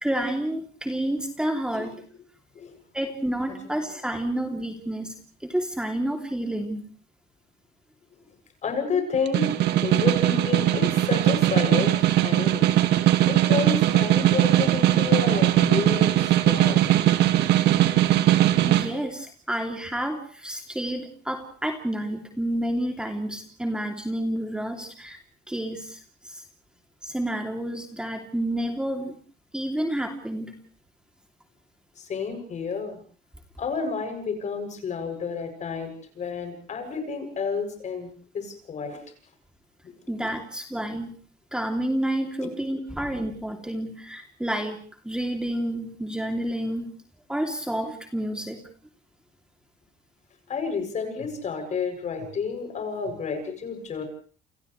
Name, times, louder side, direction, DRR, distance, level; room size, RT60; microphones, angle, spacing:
voice 1, 0.0-2.0 2.9-5.1 5.4-6.9 18.7-25.2 25.5-26.4 27.0-29.2 29.5-30.5 40.1-41.1 41.5-46.9 47.3-48.6, right 1 dB, 5° right, 3 dB, 3.0 m, -29 dB
voice 2, 8.6-9.5 9.8-12.8 13.3-17.1 32.0-33.0 33.6-39.0 39.8-39.9 42.4-42.5 50.5-54.0, left 5 dB, 45° left, 6 dB, 7.6 m, -30 dB
Snare drum, 9.1-18.9, right 13 dB, 80° right, 2.0 m, -20 dB
30.0 x 28.0 x 3.3 m, 0.43 s
cardioid pair, 110°, 17 cm